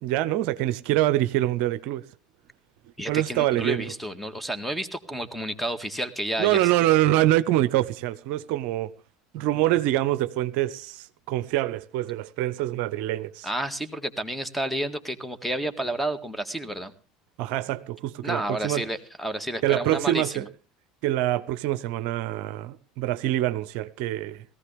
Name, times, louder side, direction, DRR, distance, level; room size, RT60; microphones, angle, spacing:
voice 1, 0.0-2.0 3.1-3.9 6.4-8.9 9.3-13.5 17.4-18.8 19.6-20.5 21.0-24.4, right 14 dB, 60° right, 0.6 m, -25 dB
voice 2, 3.0-6.6 13.4-16.9 18.2-20.4, right 1 dB, ahead, 1.9 m, -30 dB
18.0 x 15.0 x 3.4 m
hypercardioid pair, 75°, 3 cm